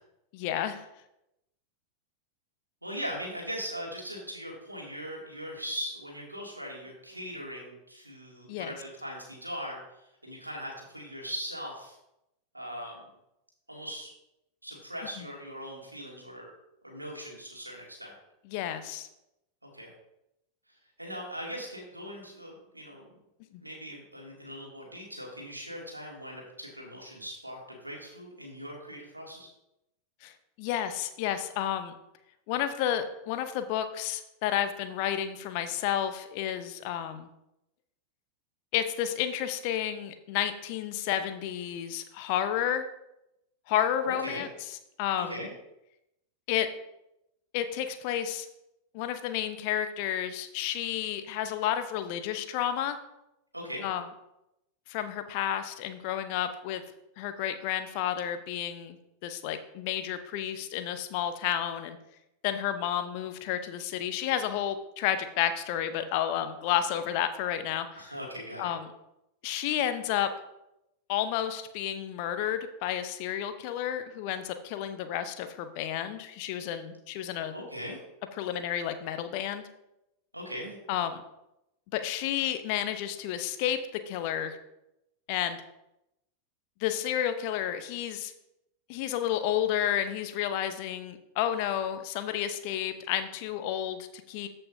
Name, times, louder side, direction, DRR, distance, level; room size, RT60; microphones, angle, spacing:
voice 1, 0.3-0.8 8.5-8.7 15.2-15.3 18.5-19.1 23.5-23.6 30.2-31.9 32.5-37.3 38.7-42.8 43.7-44.5 45.0-45.4 46.5-46.7 47.5-48.5 48.9-53.0 53.8-54.0 54.9-56.8 57.2-59.0 59.2-62.0 62.4-68.0 68.6-68.8 69.4-70.3 71.1-77.5 78.4-79.6 80.9-81.2 81.9-83.8 84.1-84.6 85.3-85.6 86.8-88.3 88.9-94.5, left 10 dB, 45° left, 9 dB, 0.8 m, -31 dB
voice 2, 2.8-12.0 12.5-13.0 13.7-14.1 14.6-16.5 16.8-18.1 19.6-19.9 20.7-23.1 23.6-29.5 44.0-44.4 45.1-45.5 53.5-53.8 67.9-68.7 77.5-78.0 80.3-80.8, equal, 85° right, -1 dB, 2.4 m, -40 dB
14.0 x 5.7 x 2.7 m, 0.86 s
figure-of-eight pair, 90°, 0 cm